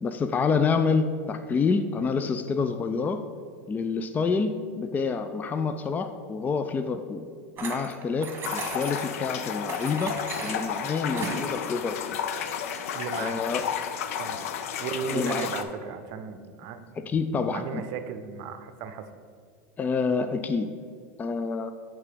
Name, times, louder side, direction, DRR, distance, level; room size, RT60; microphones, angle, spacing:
voice 1, 0.0-3.2 3.7-7.3 7.6-12.2 13.2-13.7 15.1-15.5 17.0-17.8 19.8-20.7 21.2-21.7, left 5 dB, 20° left, 9 dB, 0.4 m, -27 dB
sound 1, 7.6-9.2 9.7-11.5, right 4 dB, 30° right, 1.4 m, -36 dB
sound 2, 8.4-15.6, left 8 dB, 80° left, 0.5 m, -32 dB
voice 2, 12.9-13.4 14.2-14.4 14.8-17.1 17.5-19.1, right 6 dB, 60° right, 10 dB, 0.6 m, -35 dB
8.2 x 3.6 x 5.2 m, 2.1 s
hypercardioid pair, 100°, 8 cm